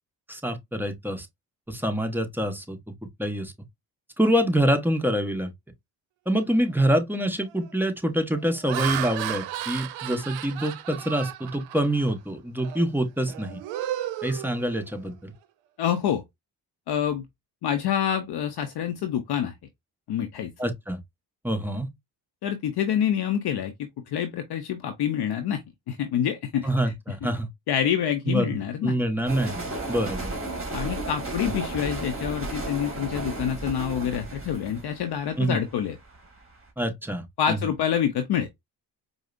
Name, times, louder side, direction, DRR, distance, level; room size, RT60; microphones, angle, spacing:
voice 1, 0.3-1.3 1.7-2.8 3.2-3.5 4.2-5.5 6.3-13.6 14.2-15.3 20.6-21.0 21.4-21.9 26.6-27.5 28.3-28.6 28.8-30.3 35.4-35.6 36.8-37.7, right 1 dB, 5° right, 0.9 m, -26 dB
Laughter, 6.6-6.8 7.4-7.7 8.3-12.1 12.6-12.8 13.2-15.1, right 12 dB, 75° right, 0.6 m, -34 dB
voice 2, 15.8-16.2 16.9-17.2 17.6-19.5 20.1-20.5 22.4-25.6 25.9-26.7 27.7-29.0 30.7-36.0 37.4-38.5, left 9 dB, 55° left, 0.6 m, -27 dB
sound 1, 29.3-36.3, right 2 dB, 30° right, 1.7 m, -34 dB
4.8 x 2.0 x 2.4 m
supercardioid pair, 55°, 45 cm